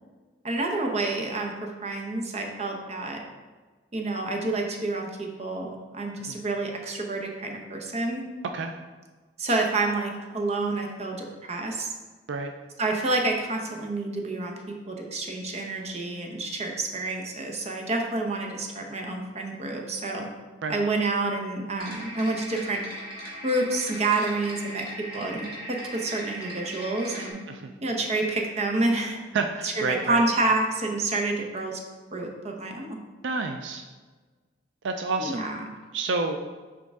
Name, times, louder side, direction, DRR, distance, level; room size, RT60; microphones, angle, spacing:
voice 1, 0.4-3.2 3.9-8.3 9.4-11.9 12.8-20.3 20.7-22.8 23.4-27.4 27.8-29.2 29.6-31.8 32.1-33.0 35.2-35.7, right 2 dB, 35° right, 2 dB, 0.8 m, -28 dB
sound 1, 21.8-27.3, right 1 dB, 55° right, 1.6 m, -39 dB
voice 2, 29.3-30.2 33.2-33.8 34.8-35.4 35.9-36.4, right 3 dB, 75° right, 6 dB, 0.4 m, -29 dB
6.3 x 4.6 x 3.5 m, 1.4 s
head